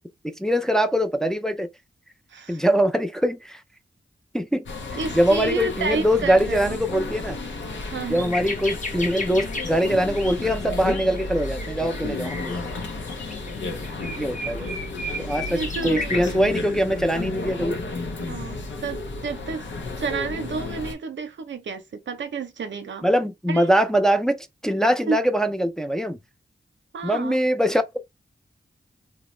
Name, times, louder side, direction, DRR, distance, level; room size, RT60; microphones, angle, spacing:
voice 1, 0.2-1.7 2.5-3.6 4.3-4.7 5.1-7.4 8.1-12.7 14.2-14.7 15.2-17.8 23.0-26.2 27.0-27.8, equal, 5° left, 0.4 m, -22 dB
voice 2, 2.3-2.6 4.9-6.8 7.9-8.3 15.5-16.2 18.2-19.7 20.0-23.1 23.5-23.7 25.1-25.2 26.9-27.4, right 4 dB, 75° right, 0.6 m, -30 dB
sound 1, 4.7-20.9, left 2 dB, 85° left, 0.6 m, -32 dB
sound 2, 6.5-6.7 7.1-7.2 7.5-16.4 17.1-17.3, left 2 dB, 40° left, 0.9 m, -35 dB
2.8 x 2.0 x 3.1 m
cardioid pair, 50°, 19 cm